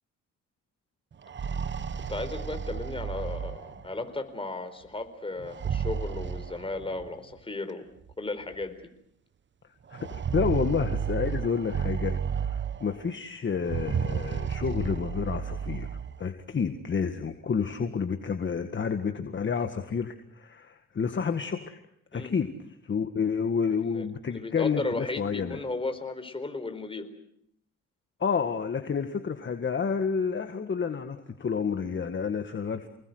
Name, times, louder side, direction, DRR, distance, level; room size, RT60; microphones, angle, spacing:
sound 1, 1.1-4.0 5.4-7.1 8.1-8.2 8.5-8.6 9.9-13.0 13.6-16.2, right 7 dB, 40° right, 1.1 m, -32 dB
voice 1, 2.1-7.9 8.2-8.7 22.1-22.3 23.9-27.1, left 2 dB, 20° left, 8 dB, 4.3 m, -35 dB
voice 2, 9.9-15.9 16.2-21.8 22.1-22.5 22.8-25.6 28.2-32.9, left 6 dB, 40° left, 7 dB, 1.9 m, -30 dB
29.0 x 20.5 x 8.1 m, 0.73 s
cardioid pair, 90°, 30 cm